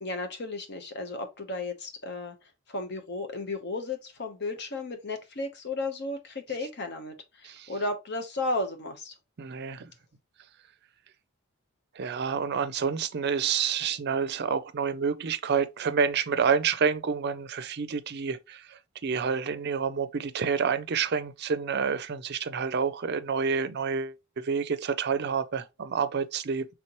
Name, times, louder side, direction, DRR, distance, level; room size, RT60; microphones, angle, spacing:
voice 1, 0.0-2.4 2.7-9.1, left 2 dB, 55° left, 1.0 m, -34 dB
voice 2, 9.4-9.9 12.0-18.6 19.0-26.7, right 6 dB, 50° right, 0.5 m, -28 dB
4.4 x 3.6 x 2.9 m
head